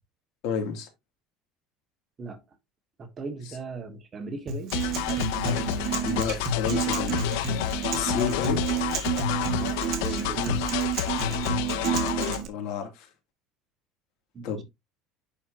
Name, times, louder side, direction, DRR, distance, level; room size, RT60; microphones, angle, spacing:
voice 1, 0.4-0.9 6.0-7.2 7.9-8.6 12.5-13.1 14.4-14.6, left 7 dB, 65° left, 2.5 m, -30 dB
voice 2, 3.0-4.8 9.6-10.7 14.3-14.6, right 4 dB, 25° right, 1.5 m, -38 dB
Acoustic guitar, 4.5-12.5, right 5 dB, 40° right, 1.8 m, -29 dB
sound 1, 4.7-12.4, left 13 dB, 80° left, 0.7 m, -30 dB
Rain, 4.7-11.4, left 1 dB, 15° left, 2.4 m, -43 dB
10.5 x 4.6 x 2.7 m
cardioid pair, 150°, 0 cm